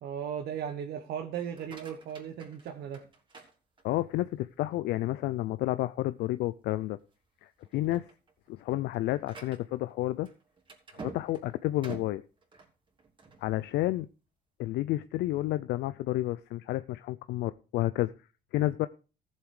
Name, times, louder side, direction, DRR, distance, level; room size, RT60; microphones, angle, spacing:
voice 1, 0.0-3.0, right 8 dB, 70° right, 5 dB, 1.4 m, -36 dB
sound 1, 1.4-4.2 4.7-5.2 5.6-5.7 6.1-6.3 7.0-7.2 7.6-13.5, right 4 dB, 30° right, 3.2 m, -49 dB
voice 2, 3.8-7.0 7.4-8.1 8.5-10.3 10.9-12.2 13.4-14.1 14.6-18.1 18.5-18.9, left 16 dB, 80° left, 14 dB, 0.5 m, -30 dB
14.5 x 7.5 x 4.8 m, 0.34 s
cardioid pair, 110°, 17 cm